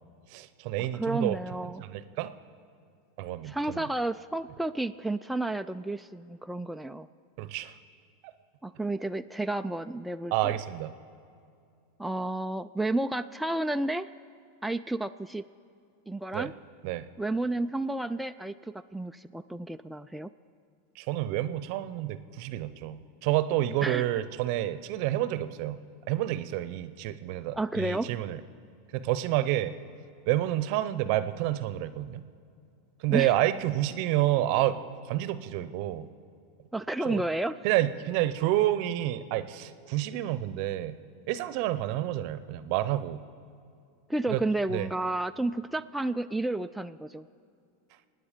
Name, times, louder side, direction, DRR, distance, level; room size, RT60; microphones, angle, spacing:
voice 1, 0.3-1.4 1.8-2.3 3.2-3.8 7.4-7.7 10.3-10.9 16.3-16.5 16.8-17.0 21.0-25.8 26.1-28.4 28.9-29.7 30.3-32.2 33.0-34.8 35.1-36.1 37.0-37.2 37.6-41.0 41.3-43.2 44.3-44.4 44.7-44.9, right 14 dB, 55° right, 14 dB, 0.7 m, -29 dB
voice 2, 0.9-1.8 3.4-7.1 8.6-10.6 12.0-14.1 14.6-15.4 16.1-16.5 17.2-20.3 23.8-24.1 27.5-28.1 33.1-33.3 36.7-37.6 44.1-47.3, right 2 dB, 5° right, 7 dB, 0.3 m, -31 dB
25.0 x 9.6 x 5.1 m, 2.5 s
hypercardioid pair, 115°, 0 cm